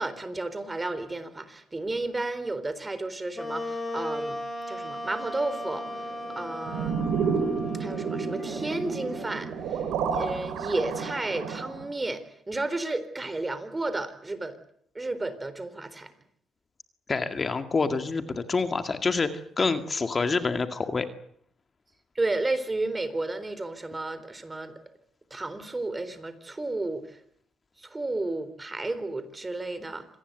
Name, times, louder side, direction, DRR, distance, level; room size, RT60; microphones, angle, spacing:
voice 1, 0.0-4.4 4.7-6.1 6.4-7.0 7.7-9.9 10.1-14.6 14.9-16.1 22.2-24.8 25.3-27.2 27.8-30.1, right 2 dB, 20° right, 13 dB, 3.8 m, -32 dB
Wind instrument woodwind instrument, 3.3-10.8, left 1 dB, 15° left, 6.8 m, -37 dB
sound 1, 5.5-11.2, right 3 dB, 40° right, 7.8 m, -47 dB
sound 2, 6.7-11.9, right 6 dB, 85° right, 4.6 m, -30 dB
voice 2, 17.1-21.1, left 4 dB, 35° left, 8 dB, 2.1 m, -27 dB
26.5 x 19.0 x 8.2 m, 0.66 s
cardioid pair, 90°, 0 cm